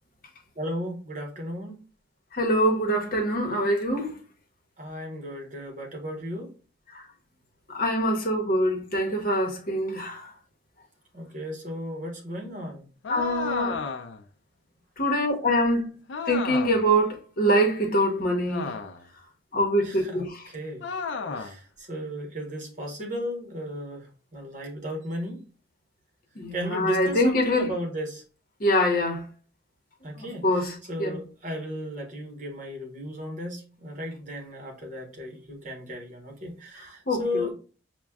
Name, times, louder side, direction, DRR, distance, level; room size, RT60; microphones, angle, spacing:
voice 1, 0.6-1.8 4.8-6.5 11.1-12.8 19.8-20.3 20.5-20.9 21.3-25.4 26.5-28.2 30.0-37.5, equal, 40° right, 1.1 m, -35 dB
voice 2, 2.3-4.2 6.9-7.0 7.7-10.3 13.1-13.9 15.0-16.0 16.3-18.7 19.5-20.4 26.4-27.7 28.6-29.2 30.2-31.2 37.1-37.5, equal, 50° left, 0.9 m, -24 dB
sound 1, 13.0-14.3 16.1-16.9 18.5-19.1 20.8-21.6, left 5 dB, 75° left, 0.5 m, -33 dB
6.0 x 2.2 x 2.3 m
head